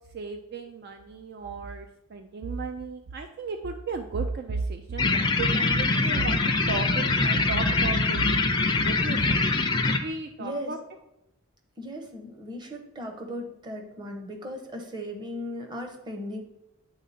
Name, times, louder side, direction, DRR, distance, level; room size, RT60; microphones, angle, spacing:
voice 1, 0.1-6.4 6.7-9.6 9.9-10.8, right 4 dB, 50° right, 6 dB, 0.4 m, -34 dB
sound 1, 5.0-10.0, left 3 dB, 20° left, 0.4 m, -24 dB
voice 2, 10.4-10.7 11.8-16.4, equal, 20° right, 2 dB, 0.8 m, -37 dB
8.7 x 3.6 x 4.2 m, 0.88 s
head